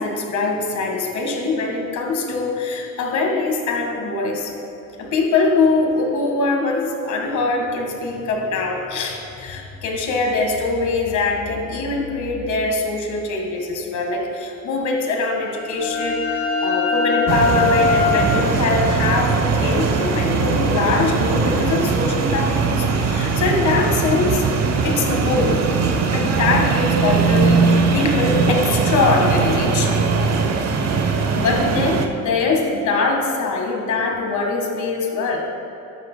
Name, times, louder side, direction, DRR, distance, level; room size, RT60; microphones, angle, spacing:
voice 1, 0.0-4.5 5.0-24.5 24.8-25.6 26.1-30.1 31.4-35.5, left 3 dB, 75° left, 1 dB, 1.8 m, -22 dB
sound 1, 15.3-20.7, left 4 dB, 30° left, 1.6 m, -24 dB
sound 2, 17.3-32.1, right 5 dB, 55° right, 1.0 m, -20 dB
14.0 x 11.5 x 2.2 m, 2.9 s
cardioid pair, 90°, 30 cm